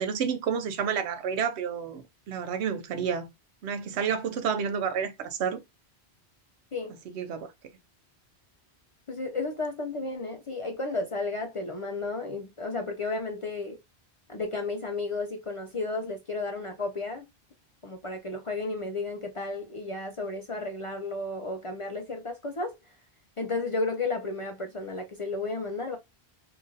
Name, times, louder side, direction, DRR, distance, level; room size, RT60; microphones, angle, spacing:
voice 1, 0.0-3.3 3.6-5.6 7.1-7.5, right 7 dB, 85° right, 0.9 m, -30 dB
voice 2, 9.1-13.8 14.3-17.3 17.8-22.8 23.4-26.0, left 3 dB, 45° left, 0.4 m, -33 dB
2.9 x 2.5 x 3.8 m
omnidirectional pair, 1.1 m